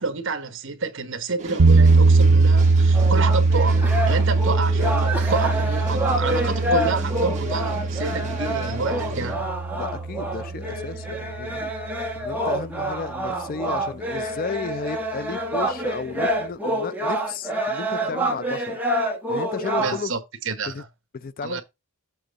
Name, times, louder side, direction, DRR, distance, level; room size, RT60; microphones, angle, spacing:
voice 1, 0.0-9.5 19.7-20.9 21.4-21.6, right 4 dB, 55° right, 1.3 m, -29 dB
sound 1, 1.4-9.3, right 1 dB, 30° right, 1.6 m, -37 dB
sound 2, 1.6-11.6, right 3 dB, 85° right, 0.6 m, -20 dB
sound 3, 2.9-20.0, right 1 dB, 10° right, 1.1 m, -27 dB
voice 2, 9.8-11.6 12.1-18.8 19.3-20.1 20.7-20.8 21.1-21.6, left 5 dB, 40° left, 0.3 m, -33 dB
7.9 x 3.5 x 5.2 m
head